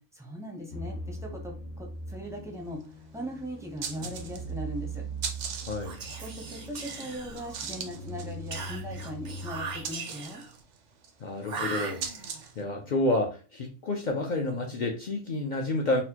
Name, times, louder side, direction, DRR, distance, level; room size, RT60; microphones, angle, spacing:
voice 1, 0.1-5.0 6.2-10.4, equal, 5° right, 0 dB, 0.5 m, -39 dB
sound 1, 0.7-9.8, right 2 dB, 85° left, 1.0 m, -40 dB
sound 2, 2.8-2.9 3.2-3.3 3.6-4.6 4.9-12.6, right 6 dB, 70° right, 0.9 m, -40 dB
voice 2, 5.6-6.0 11.2-12.0 12.6-16.0, left 2 dB, 60° left, 1 dB, 0.5 m, -29 dB
Whispering, 5.8-7.8 8.5-10.5 11.4-12.5, right 4 dB, 50° right, 0.6 m, -39 dB
4.1 x 2.1 x 2.8 m, 0.35 s
omnidirectional pair, 1.3 m